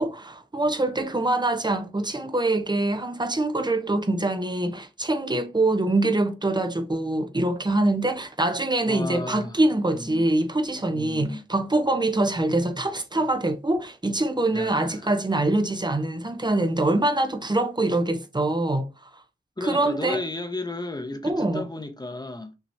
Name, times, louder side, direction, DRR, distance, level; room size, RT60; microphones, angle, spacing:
voice 1, 0.0-18.9 19.6-20.2 21.2-21.6, right 2 dB, 20° right, 0.9 m, -24 dB
voice 2, 8.9-9.6 9.9-10.2 10.9-11.4 14.5-15.1 19.6-22.5, left 2 dB, 20° left, 1.1 m, -34 dB
5.7 x 3.1 x 2.7 m
cardioid pair, 55°, 20 cm